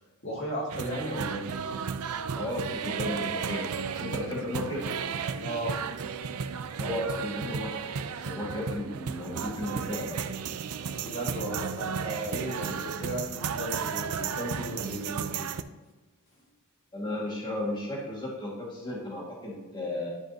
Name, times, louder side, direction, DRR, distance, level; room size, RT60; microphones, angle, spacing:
voice 1, 0.2-1.4 5.4-5.8 11.0-15.5, right 1 dB, 60° left, -3 dB, 2.4 m, -35 dB
sound 1, 0.7-15.6, right 6 dB, 75° right, 0.5 m, -34 dB
voice 2, 2.3-4.9 6.7-10.2 16.9-20.1, left 1 dB, 20° left, -5 dB, 2.0 m, -34 dB
11.5 x 5.2 x 2.9 m, 1.3 s
head